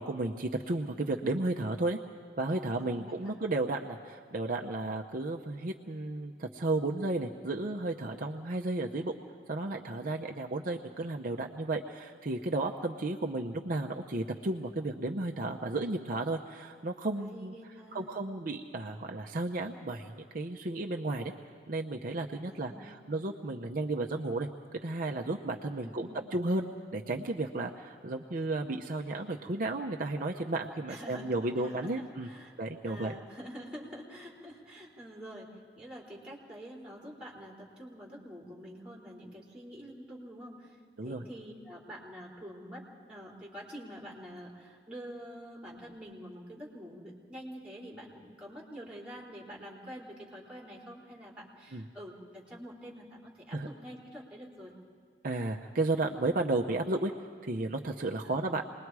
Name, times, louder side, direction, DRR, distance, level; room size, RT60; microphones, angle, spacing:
voice 1, 0.0-2.0 2.4-9.2 9.5-17.5 17.9-21.3 21.7-32.3 32.6-33.1 41.0-41.2 51.7-51.8 53.5-53.7 55.2-57.1 57.5-58.6, right 2 dB, 50° right, 2 dB, 0.7 m, -33 dB
voice 2, 2.8-3.4 17.2-18.1 22.5-23.2 25.8-26.2 30.9-32.5 32.9-54.7 58.2-58.5, equal, 5° right, -3 dB, 3.6 m, -47 dB
27.5 x 20.5 x 4.8 m, 2.2 s
head